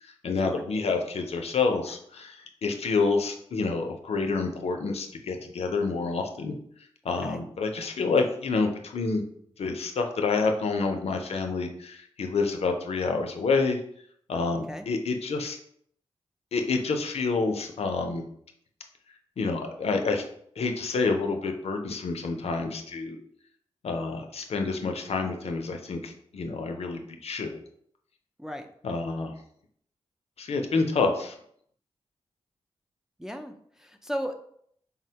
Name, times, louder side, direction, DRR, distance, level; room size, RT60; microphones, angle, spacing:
voice 1, 0.0-6.5 7.0-9.2 9.6-13.8 14.3-15.6 16.5-18.2 19.4-20.2 20.6-23.2 23.8-27.5 28.8-29.3 30.4-31.3, left 4 dB, 65° left, 4 dB, 0.5 m, -28 dB
voice 2, 7.1-7.4 14.7-14.9 28.4-28.7 33.2-34.5, equal, 5° right, 4 dB, 0.4 m, -36 dB
3.7 x 2.1 x 2.8 m, 0.67 s
supercardioid pair, 45°, 11 cm